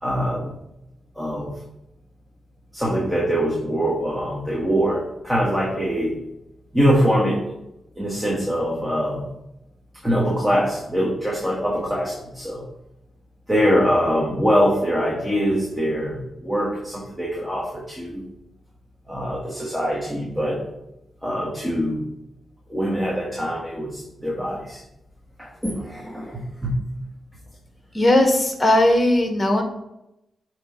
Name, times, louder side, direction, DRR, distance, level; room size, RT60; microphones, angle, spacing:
voice 1, 0.0-0.6 1.1-1.5 2.7-6.2 6.7-7.4 8.0-9.3 10.0-12.7 13.5-18.2 19.1-20.6 21.2-22.0 22.7-24.8 25.4-26.8, equal, 5° right, -3 dB, 1.6 m, -23 dB
voice 2, 27.9-29.6, left 1 dB, 25° left, 5 dB, 1.4 m, -17 dB
7.6 x 3.2 x 3.9 m, 0.87 s
supercardioid pair, 45°, 0 cm